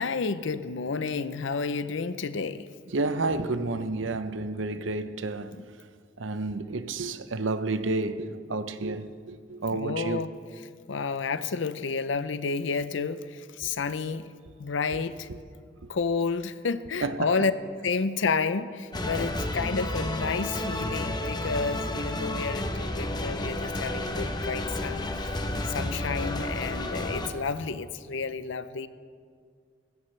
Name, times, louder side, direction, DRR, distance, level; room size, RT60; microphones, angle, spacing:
voice 1, 0.0-2.7 5.5-5.6 9.7-10.3 10.9-14.3 14.6-15.3 15.9-17.5 17.8-25.2 25.7-28.9, left 4 dB, 75° left, 0.6 m, -30 dB
voice 2, 2.9-5.6 6.2-10.2 17.0-17.3, right 3 dB, 80° right, 0.7 m, -30 dB
sound 1, 18.9-27.3, left 1 dB, 20° left, 0.8 m, -31 dB
19.5 x 16.5 x 3.3 m
head